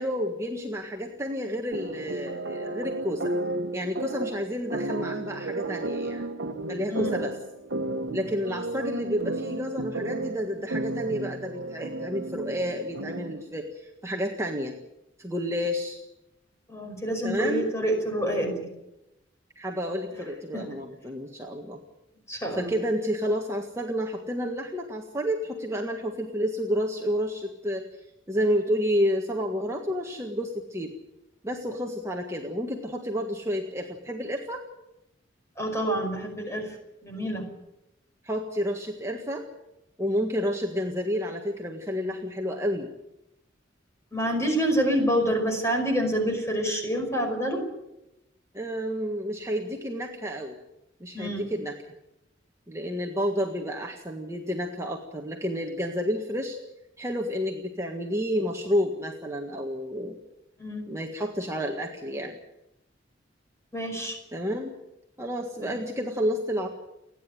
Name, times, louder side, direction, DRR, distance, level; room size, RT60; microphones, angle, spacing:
voice 1, 0.0-3.3 3.7-6.2 6.7-7.3 8.1-14.8 15.2-16.0 17.2-17.6 19.5-21.8 22.5-27.8 28.3-30.9 31.4-34.6 38.2-39.4 40.0-42.9 48.5-50.6 51.0-51.7 52.7-56.6 57.0-60.2 60.9-62.4 64.3-64.7 65.2-66.7, equal, 15° right, 1 dB, 1.7 m, -30 dB
sound 1, 1.7-13.5, right 2 dB, 70° right, 1.3 m, -33 dB
voice 2, 16.7-18.7 20.5-20.6 22.3-22.7 35.6-36.8 37.0-37.4 44.1-47.6 51.1-51.5 60.6-60.8 63.7-64.2 65.6-65.8, equal, 15° left, 3 dB, 5.3 m, -27 dB
29.5 x 10.5 x 9.3 m, 0.91 s
head